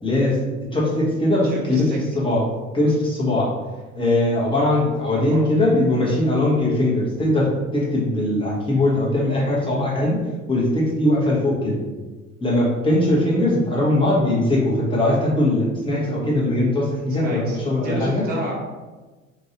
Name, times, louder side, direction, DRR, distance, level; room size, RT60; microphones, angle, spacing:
voice 1, 0.0-0.4 0.7-1.9 2.1-2.4 2.7-3.5 3.9-10.2 10.5-11.8 12.4-18.3, left 1 dB, 10° left, -6 dB, 1.3 m, -20 dB
voice 2, 1.4-2.0 5.3-5.5 6.2-6.3 17.2-18.5, equal, 20° right, -3 dB, 0.8 m, -30 dB
2.9 x 2.7 x 2.9 m, 1.2 s
hypercardioid pair, 70°, 42 cm